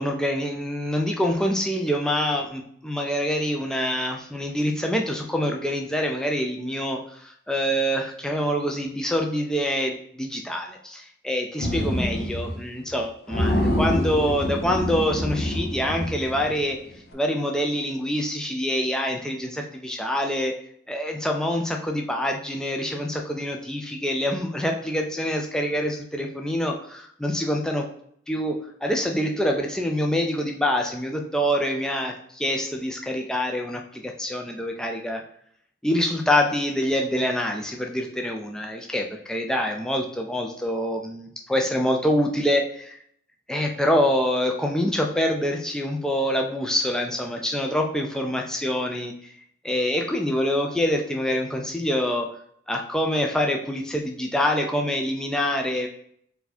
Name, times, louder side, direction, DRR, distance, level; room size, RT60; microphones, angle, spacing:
voice 1, 0.0-16.8 17.1-20.5 20.9-27.9 28.3-35.2 35.8-43.0 43.5-49.3 49.6-52.3 52.7-55.9, equal, 5° left, 1 dB, 0.3 m, -25 dB
sound 1, 11.6-12.6 12.9-13.0 13.3-16.7, left 1 dB, 50° left, 0.7 m, -26 dB
4.5 x 2.7 x 4.1 m, 0.67 s
head